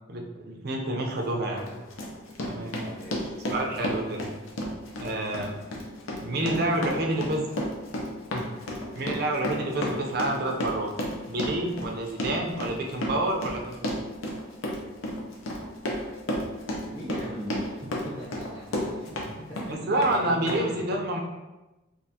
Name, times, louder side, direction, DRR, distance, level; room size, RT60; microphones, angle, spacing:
voice 1, 0.1-1.7 2.4-2.8 3.5-4.3 5.0-5.6 6.2-7.5 8.3-8.5 8.9-10.9 11.3-14.0 19.2-19.3 19.7-21.2, right 1 dB, 50° right, 1 dB, 0.5 m, -28 dB
Run, 1.0-1.1 1.6-19.3 19.6-20.2 20.5-20.6, left 1 dB, 90° left, 0.6 m, -32 dB
voice 2, 2.7-3.4 6.3-7.2 16.9-20.9, equal, 20° left, -9 dB, 0.5 m, -40 dB
3.5 x 2.5 x 2.7 m, 1.1 s
head